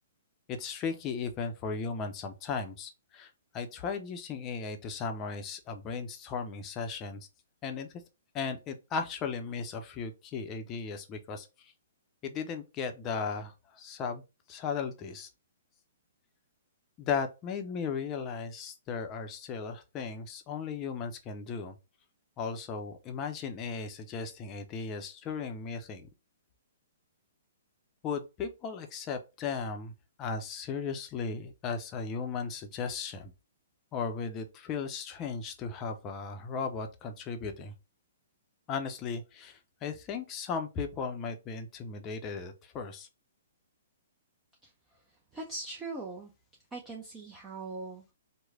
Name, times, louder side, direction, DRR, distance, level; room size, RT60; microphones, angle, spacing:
voice 1, 0.5-7.3 7.6-8.0 8.3-11.7 12.2-14.2 14.5-15.3 17.0-21.8 22.4-26.1 28.0-33.3 33.9-37.7 38.7-43.1, left 5 dB, 30° left, 0.6 m, -36 dB
voice 2, 44.6-46.3 46.7-48.1, right 3 dB, 15° right, 0.6 m, -41 dB
3.1 x 2.2 x 3.5 m
hypercardioid pair, 130°, 0 cm